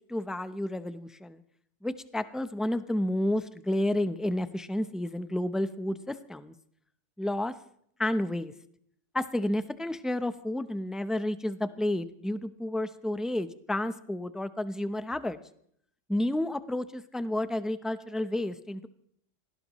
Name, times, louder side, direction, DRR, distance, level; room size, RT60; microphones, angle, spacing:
voice 1, 0.1-1.4 1.8-6.5 7.2-7.5 8.0-8.5 9.1-15.4 16.1-18.9, left 1 dB, ahead, 11 dB, 0.4 m, -31 dB
26.5 x 18.0 x 3.1 m, 0.66 s
omnidirectional pair, 1.3 m